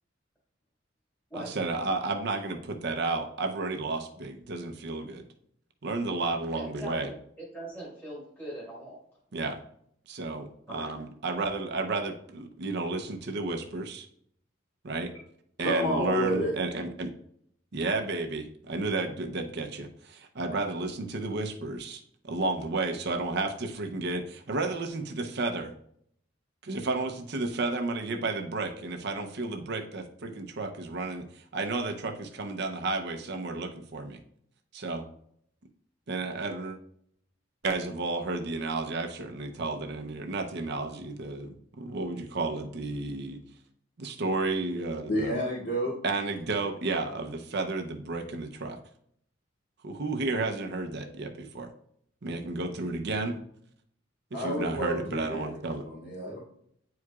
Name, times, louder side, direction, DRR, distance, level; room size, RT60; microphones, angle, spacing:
voice 1, 1.3-5.2 5.8-7.1 9.3-9.6 10.1-14.1 14.8-15.1 15.6-17.1 17.7-25.7 26.6-34.2 34.7-35.0 36.1-36.8 37.6-43.4 44.0-45.3 46.0-48.8 49.8-51.7 52.2-53.4 54.3-55.8, right 3 dB, 60° right, 4 dB, 0.7 m, -32 dB
voice 2, 6.5-9.0 10.7-10.9, right 1 dB, 10° left, -6 dB, 1.7 m, -41 dB
voice 3, 15.6-16.5 45.1-45.9 54.3-56.4, equal, 65° left, -8 dB, 2.4 m, -30 dB
9.3 x 4.7 x 2.4 m, 0.67 s
head